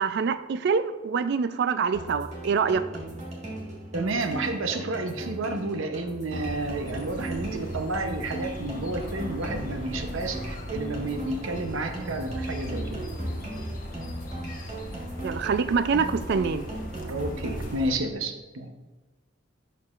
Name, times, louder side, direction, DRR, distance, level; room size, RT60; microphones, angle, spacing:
voice 1, 0.0-2.8 15.2-16.7, right 5 dB, 55° right, 13 dB, 0.3 m, -25 dB
sound 1, 1.9-17.9, right 2 dB, 35° right, 1.5 m, -38 dB
voice 2, 3.9-13.0 17.0-18.7, right 2 dB, 75° right, 6 dB, 0.7 m, -31 dB
sound 2, 6.3-17.9, equal, 40° left, 0.9 m, -38 dB
11.0 x 4.7 x 2.4 m, 1.3 s
head